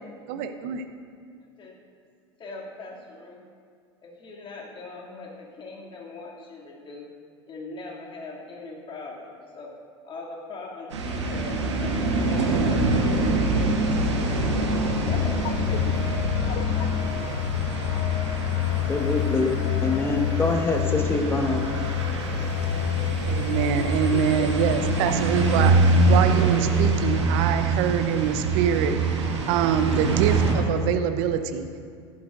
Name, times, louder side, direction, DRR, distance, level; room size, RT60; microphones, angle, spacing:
voice 1, 0.3-0.8 23.3-31.7, right 8 dB, 60° right, 8 dB, 0.7 m, -25 dB
voice 2, 2.4-3.4 4.0-7.1 7.5-9.7 10.0-12.0 12.2-12.9 13.3-14.4 14.9-17.3, left 3 dB, 35° left, -3 dB, 2.6 m, -41 dB
sound 1, 10.9-30.5, right 3 dB, 80° right, 1.2 m, -25 dB
sound 2, 15.1-25.7, left 13 dB, 55° left, 0.4 m, -28 dB
voice 3, 18.9-19.5 19.8-21.6, left 3 dB, 15° left, 3 dB, 1.4 m, -25 dB
14.5 x 11.5 x 2.6 m, 2.1 s
hypercardioid pair, 75°, 15 cm